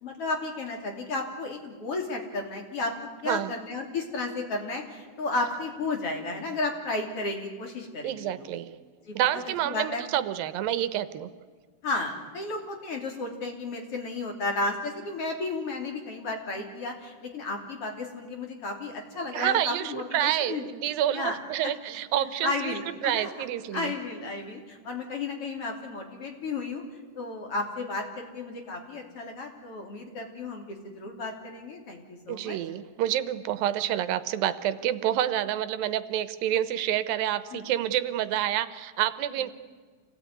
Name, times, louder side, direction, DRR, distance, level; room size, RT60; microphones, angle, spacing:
voice 1, 0.0-2.9 3.2-8.5 9.1-10.0 11.8-20.6 21.1-21.4 21.6-21.7 22.4-23.3 23.7-26.8 27.2-32.6 37.5-37.7, left 3 dB, 45° left, 2 dB, 3.6 m, -33 dB
voice 2, 8.0-8.7 9.1-11.3 19.3-23.9 32.3-39.5, right 12 dB, 85° right, 14 dB, 2.6 m, -28 dB
27.0 x 17.5 x 9.6 m, 1.5 s
omnidirectional pair, 4.0 m